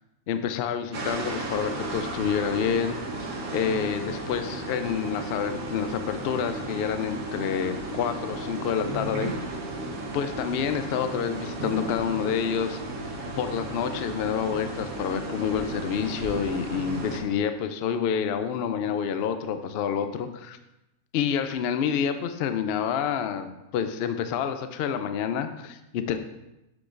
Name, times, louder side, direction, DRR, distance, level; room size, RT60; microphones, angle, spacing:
voice 1, 0.3-3.0 3.5-9.3 10.1-12.8 13.4-20.6 21.1-23.5 23.7-26.2, left 7 dB, 85° left, 9 dB, 0.5 m, -28 dB
sound 1, 0.9-17.2, right 2 dB, 70° right, 1.4 m, -34 dB
7.7 x 6.0 x 2.5 m, 0.93 s
omnidirectional pair, 1.6 m